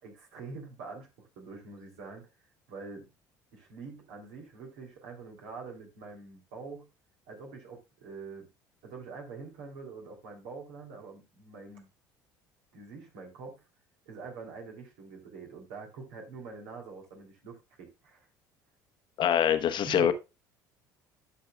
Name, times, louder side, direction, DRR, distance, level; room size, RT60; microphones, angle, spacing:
voice 1, 0.0-2.2 2.7-3.1 3.5-6.9 7.3-8.5 8.8-11.9 12.7-13.6 14.1-18.3 19.8-20.1, right 4 dB, 70° right, 2.9 m, -45 dB
voice 2, 19.2-20.1, left 9 dB, 50° left, 1.0 m, -24 dB
11.5 x 6.6 x 2.3 m
hypercardioid pair, 60°, 10 cm